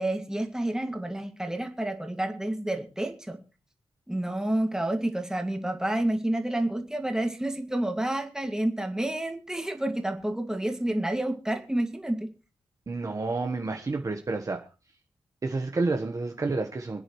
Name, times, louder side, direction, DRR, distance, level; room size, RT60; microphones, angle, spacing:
voice 1, 0.0-3.4 4.1-12.3, right 1 dB, 5° right, 5 dB, 2.2 m, -29 dB
voice 2, 12.9-14.7 15.4-17.0, right 3 dB, 35° right, 4 dB, 1.3 m, -29 dB
26.5 x 10.0 x 3.2 m, 0.33 s
wide cardioid pair, 140°, 10 cm